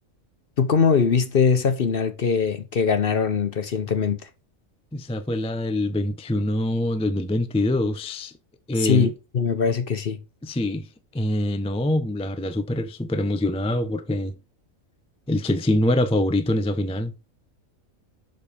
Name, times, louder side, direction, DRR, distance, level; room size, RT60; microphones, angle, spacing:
voice 1, 0.6-4.3 8.8-10.2, left 6 dB, 50° left, 0.9 m, -22 dB
voice 2, 4.9-8.3 8.7-9.1 10.4-10.9 11.1-14.4 15.3-17.1, left 1 dB, 10° left, 0.4 m, -24 dB
6.5 x 5.3 x 5.1 m
omnidirectional pair, 1.4 m